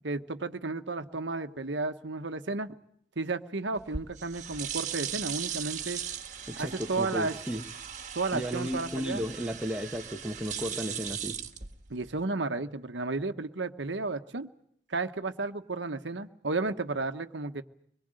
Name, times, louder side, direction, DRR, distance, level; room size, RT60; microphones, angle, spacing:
voice 1, 0.0-2.7 3.2-6.0 6.6-7.3 8.1-9.2 11.9-14.5 14.9-17.6, right 3 dB, 80° right, 8 dB, 1.2 m, -33 dB
sound 1, 3.8-12.2, right 8 dB, 40° right, 1.8 m, -38 dB
voice 2, 6.5-7.6 8.3-11.4, equal, 5° right, 3 dB, 1.3 m, -34 dB
24.0 x 22.0 x 7.7 m, 0.68 s
head